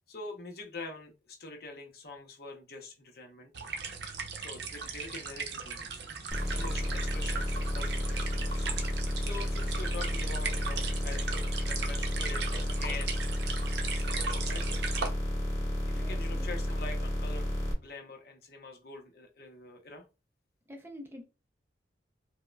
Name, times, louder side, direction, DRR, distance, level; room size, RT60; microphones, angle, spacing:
voice 1, 0.1-3.5 4.4-6.0 6.5-8.7 9.2-13.1 13.9-14.9 15.5-17.5 17.8-20.1, left 3 dB, 55° left, 3 dB, 0.7 m, -45 dB
sound 1, 3.5-15.1, right 5 dB, 65° right, 0.6 m, -38 dB
sound 2, 6.3-17.7, left 1 dB, 15° left, 1.1 m, -32 dB
voice 2, 15.9-16.5 20.7-21.2, left 1 dB, 10° right, 4 dB, 0.4 m, -46 dB
4.7 x 2.1 x 2.2 m, 0.29 s
head